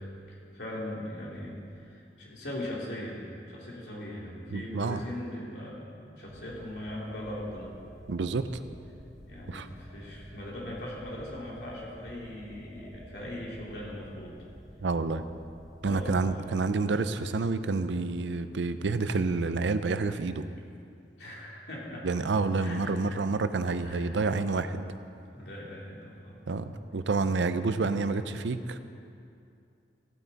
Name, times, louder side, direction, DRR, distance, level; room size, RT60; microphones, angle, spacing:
voice 1, 0.0-5.9 6.2-7.7 9.3-14.3 15.8-16.5 21.2-22.1 22.6-23.1 23.8-24.2 25.3-26.4, left 1 dB, 70° left, -4 dB, 2.6 m, -40 dB
voice 2, 4.5-5.0 8.1-8.5 9.5-9.7 14.8-15.2 15.8-20.5 22.0-24.9 26.5-28.8, right 3 dB, 85° right, 11 dB, 0.5 m, -29 dB
sound 1, 5.7-19.2, right 1 dB, 35° right, 3.1 m, -55 dB
sound 2, 6.3-16.2, equal, 5° left, 3.0 m, -51 dB
15.5 x 9.2 x 4.0 m, 2.5 s
head